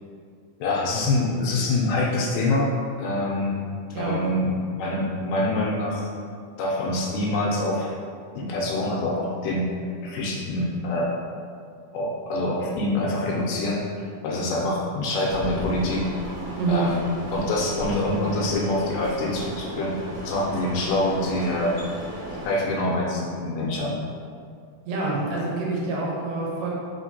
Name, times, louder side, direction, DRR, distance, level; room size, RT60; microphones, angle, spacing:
voice 1, 0.6-3.6 4.0-6.1 6.6-7.9 8.4-9.6 10.0-11.2 11.9-16.0 16.7-17.0 17.3-19.9 20.2-21.8 22.4-24.0, left 2 dB, 80° left, -3 dB, 2.1 m, -25 dB
sound 1, 15.3-22.5, equal, 65° right, 1.1 m, -35 dB
voice 2, 16.6-17.0 24.9-26.7, right 3 dB, 80° right, -4 dB, 2.4 m, -26 dB
5.0 x 3.2 x 2.7 m, 2.2 s
omnidirectional pair, 3.9 m